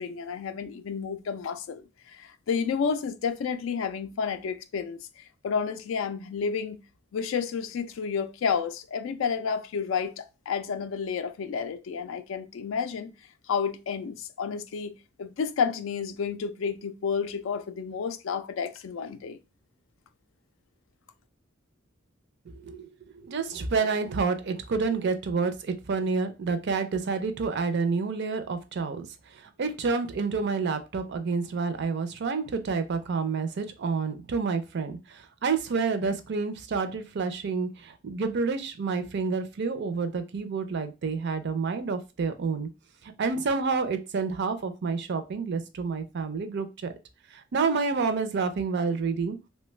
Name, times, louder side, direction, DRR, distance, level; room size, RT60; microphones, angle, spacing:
voice 1, 0.0-6.8 7.1-13.1 13.5-19.4, left 6 dB, 70° left, 0.3 m, -31 dB
voice 2, 22.6-22.9 23.1-29.1 29.3-42.7 43.2-46.9 47.3-49.4, right 4 dB, 60° right, 0.4 m, -29 dB
3.1 x 2.2 x 3.1 m
head